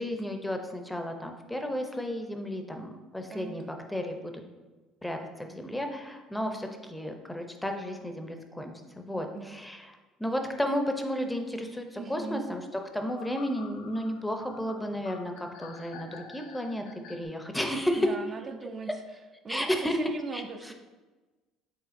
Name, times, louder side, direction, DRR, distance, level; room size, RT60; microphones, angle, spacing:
voice 1, 0.0-4.4 5.0-12.6 12.9-18.1 19.5-20.0 20.3-20.4 20.7-20.8, equal, 5° left, 4 dB, 0.6 m, -33 dB
voice 2, 12.0-12.4 18.0-19.0 19.4-20.7, right 4 dB, 40° right, 5 dB, 0.4 m, -39 dB
sound 1, 12.8-17.3, left 5 dB, 85° left, 0.6 m, -48 dB
5.6 x 3.7 x 2.6 m, 1.2 s
supercardioid pair, 85°, 0 cm